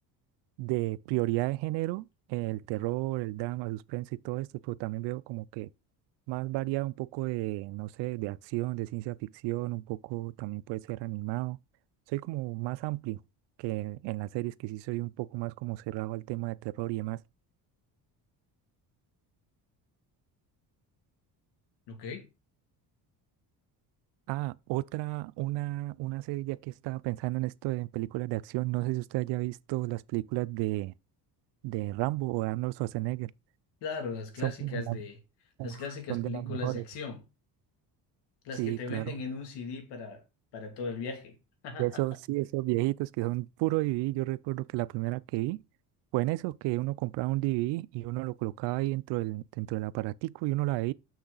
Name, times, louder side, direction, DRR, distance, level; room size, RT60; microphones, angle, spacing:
voice 1, 0.6-5.7 6.3-11.6 12.1-13.2 13.6-17.2 24.3-30.9 31.6-33.3 34.4-35.0 35.6-35.7 36.1-36.8 38.6-39.2 41.8-45.6 46.1-50.9, right 19 dB, 90° right, 0.5 m, -32 dB
voice 2, 21.9-22.3 33.8-35.2 35.6-37.2 38.4-40.2 40.5-41.4 41.6-42.0, left 4 dB, 80° left, 2.6 m, -38 dB
6.8 x 6.3 x 3.9 m
cardioid pair, 140°, 40 cm